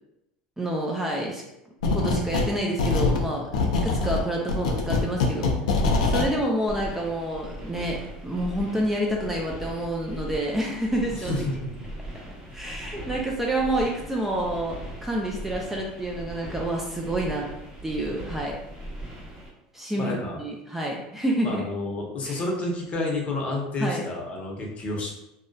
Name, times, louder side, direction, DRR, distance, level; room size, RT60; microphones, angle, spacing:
voice 1, 0.6-1.4 1.9-3.5 3.8-5.6 6.0-11.4 12.5-17.5 17.8-18.6 19.7-20.1 20.4-21.6 22.3-22.4 23.8-24.0, right 1 dB, 10° right, -2 dB, 0.3 m, -28 dB
sound 1, 1.8-2.5 2.8-6.3, left 3 dB, 90° left, 0.4 m, -24 dB
voice 2, 3.5-4.0 11.2-11.5 12.9-13.0 19.9-20.3 21.4-25.1, left 2 dB, 35° left, -1 dB, 0.7 m, -30 dB
sound 2, 6.7-19.5, right 1 dB, 25° right, 0.8 m, -39 dB
2.6 x 2.1 x 2.2 m, 0.89 s
supercardioid pair, 100°, 4 cm